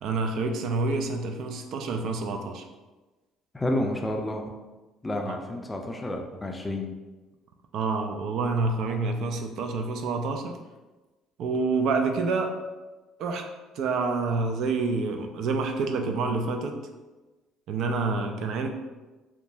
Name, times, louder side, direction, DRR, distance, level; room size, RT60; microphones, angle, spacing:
voice 1, 0.0-2.6 5.1-5.4 7.7-10.5 11.4-12.6 13.2-13.5 13.7-16.8 17.7-18.7, right 3 dB, 65° right, 5 dB, 0.3 m, -28 dB
voice 2, 3.5-4.4 5.0-6.9, left 1 dB, 15° left, 3 dB, 0.4 m, -30 dB
2.8 x 2.2 x 2.6 m, 1.2 s
supercardioid pair, 85°, 0 cm